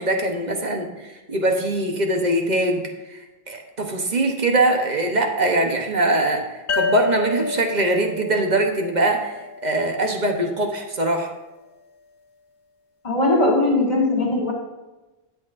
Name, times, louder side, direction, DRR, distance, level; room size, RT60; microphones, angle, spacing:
voice 1, 0.0-2.8 3.1-9.4 9.6-11.3, right 1 dB, 45° right, 3 dB, 1.1 m, -22 dB
sound 1, 6.7-10.1, left 3 dB, 65° left, 0.8 m, -29 dB
voice 2, 13.0-14.5, left 2 dB, 35° left, -5 dB, 1.6 m, -19 dB
12.5 x 8.0 x 2.6 m, 1.1 s
omnidirectional pair, 1.0 m